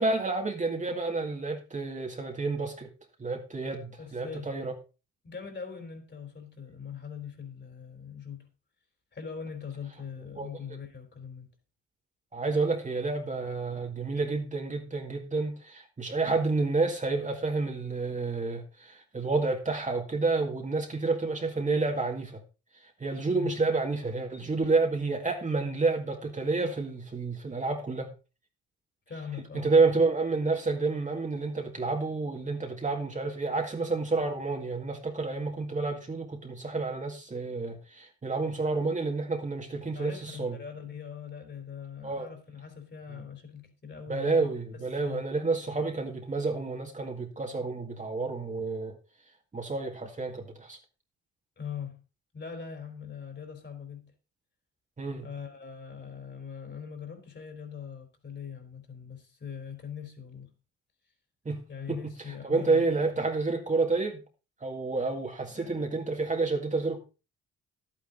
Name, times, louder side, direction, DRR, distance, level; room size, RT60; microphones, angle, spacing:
voice 1, 0.0-2.9 3.2-4.7 10.3-10.5 12.3-22.4 23.0-28.1 29.5-40.6 42.0-42.3 44.1-49.0 49.5-50.8 55.0-55.3 61.5-61.6 61.9-64.2 64.6-67.0, right 3 dB, 25° right, 2.0 m, -29 dB
voice 2, 4.0-4.5 5.2-8.5 9.1-11.5 23.3-23.5 29.1-29.7 39.9-45.2 51.6-52.0 52.3-54.1 55.2-60.5 61.7-62.9 65.5-65.8, left 7 dB, 35° left, 3.8 m, -42 dB
11.5 x 9.0 x 4.0 m
cardioid pair, 90°, 30 cm